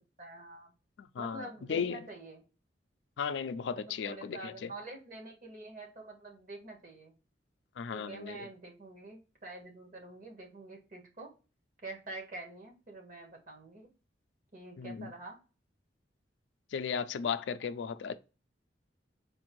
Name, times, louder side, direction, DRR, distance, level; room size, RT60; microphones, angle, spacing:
voice 1, 0.2-0.7 1.2-2.4 3.7-7.1 7.9-11.3 11.8-13.9 14.5-15.4, right 2 dB, 50° right, 1.3 m, -47 dB
voice 2, 1.0-2.0 3.2-4.7 7.8-8.5 14.8-15.1 16.7-18.2, left 6 dB, 80° left, 0.4 m, -35 dB
4.2 x 2.6 x 3.0 m
head